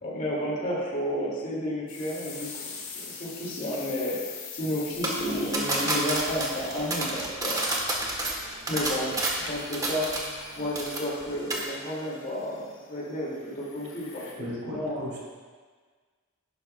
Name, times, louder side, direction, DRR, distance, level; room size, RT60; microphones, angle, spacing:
voice 1, 0.0-4.2 4.5-7.6 8.7-10.1 10.6-15.0, equal, 35° left, -5 dB, 2.2 m, -32 dB
sound 1, 1.9-14.3, left 5 dB, 60° left, 1.6 m, -44 dB
sound 2, 5.0-10.5 10.8-11.2 11.5-11.7, right 1 dB, 15° right, 1.1 m, -29 dB
voice 2, 14.4-15.2, equal, 70° right, -4 dB, 2.3 m, -36 dB
11.0 x 10.5 x 2.2 m, 1.5 s
head